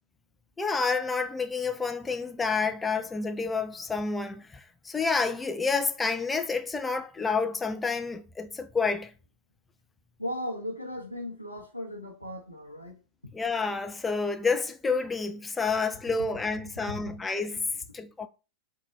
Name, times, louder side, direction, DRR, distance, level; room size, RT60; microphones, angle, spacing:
voice 1, 0.6-9.1 13.3-17.7 17.9-18.3, left 4 dB, 10° left, 0.4 m, -29 dB
voice 2, 10.2-13.0 13.2-13.3, left 1 dB, 85° left, 0.7 m, -37 dB
3.8 x 2.2 x 3.1 m
figure-of-eight pair, 90°, 0 cm